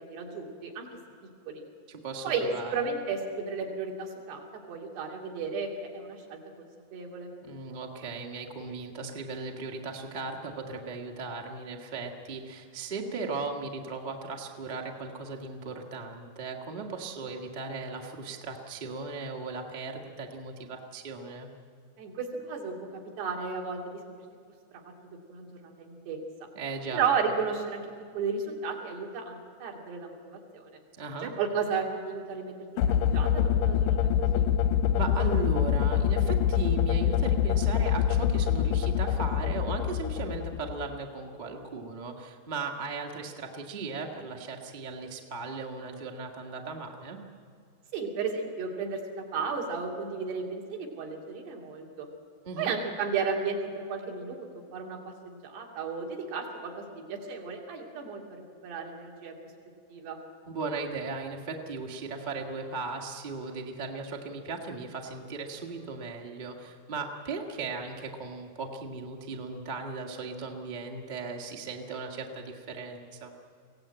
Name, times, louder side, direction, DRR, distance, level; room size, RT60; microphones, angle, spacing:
voice 1, 0.1-0.9 1.5-1.6 2.2-7.3 22.0-24.0 24.8-24.9 25.3-26.2 26.9-30.7 31.2-34.5 47.9-52.1 52.6-55.0 55.3-59.4 59.9-60.2, right 5 dB, 85° right, 0 dB, 4.8 m, -34 dB
voice 2, 1.9-2.7 7.4-21.5 26.5-27.0 31.0-31.3 34.9-47.2 52.4-52.7 60.4-73.3, right 4 dB, 70° right, 1 dB, 0.4 m, -37 dB
sound 1, 32.8-41.0, left 9 dB, 80° left, 1.9 m, -25 dB
23.5 x 17.0 x 8.9 m, 2.3 s
omnidirectional pair, 4.6 m